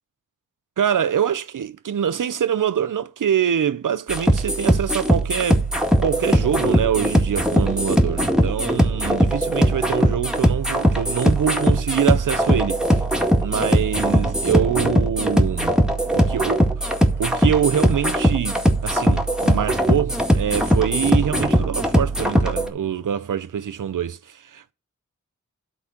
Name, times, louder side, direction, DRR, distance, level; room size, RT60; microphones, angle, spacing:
voice 1, 0.8-5.7 6.0-12.8 13.4-15.8 16.1-16.6 17.2-24.7, right 8 dB, 85° right, 0.6 m, -24 dB
sound 1, 4.1-22.7, equal, ahead, 1.9 m, -20 dB
12.0 x 4.1 x 5.9 m
cardioid pair, 55°, 31 cm